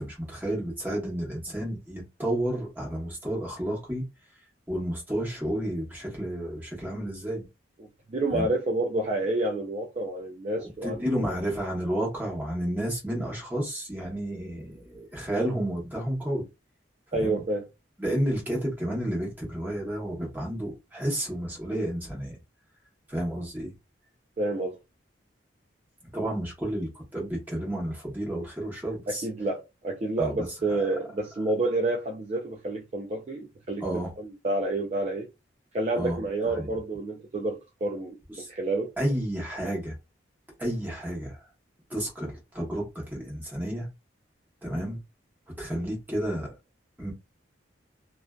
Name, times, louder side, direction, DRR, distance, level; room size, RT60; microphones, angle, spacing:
voice 1, 0.0-4.0 4.7-7.4 8.3-8.5 10.6-16.4 17.1-17.4 18.0-22.4 23.1-23.7 26.1-29.3 30.2-30.3 30.7-30.8 33.8-34.1 36.0-36.2 36.5-36.7 38.4-38.5 39.0-39.9 40.6-41.4 41.9-43.9 44.6-45.0 45.6-46.5 47.0-47.1, right 1 dB, 10° right, 1.0 m, -31 dB
voice 2, 7.8-11.4 17.1-17.7 24.4-24.8 29.1-35.3 35.7-38.9, right 2 dB, 35° right, 0.3 m, -29 dB
2.5 x 2.4 x 2.2 m
head